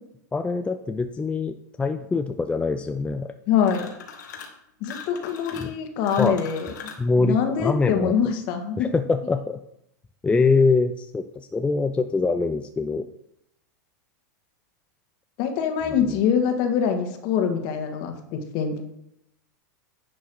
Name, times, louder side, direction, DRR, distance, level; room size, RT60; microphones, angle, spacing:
voice 1, 0.3-3.3 5.6-5.7 6.2-6.4 7.0-8.1 8.8-9.6 10.2-13.1 16.0-16.2, left 4 dB, 10° left, 8 dB, 0.5 m, -24 dB
voice 2, 3.5-3.9 4.8-6.7 7.2-8.9 15.4-18.8, left 7 dB, 50° left, 5 dB, 1.9 m, -24 dB
sound 1, 3.6-4.6 4.8-7.1, left 6 dB, 80° left, 1.9 m, -41 dB
10.0 x 6.1 x 4.8 m, 0.79 s
hypercardioid pair, 105°, 10 cm